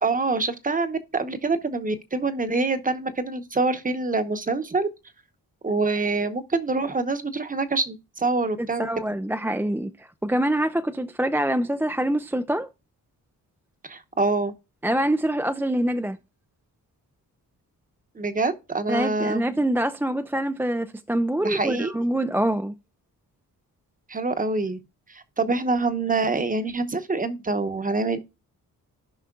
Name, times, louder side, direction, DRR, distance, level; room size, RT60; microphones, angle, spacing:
voice 1, 0.0-4.9 5.6-8.9 13.8-14.5 18.1-19.4 21.4-21.9 24.1-24.8 25.1-28.2, right 3 dB, 25° right, 0.9 m, -25 dB
voice 2, 8.6-12.7 14.8-16.2 18.9-22.7, right 1 dB, 5° right, 0.3 m, -25 dB
16.0 x 5.6 x 2.3 m
wide cardioid pair, 150°, 35 cm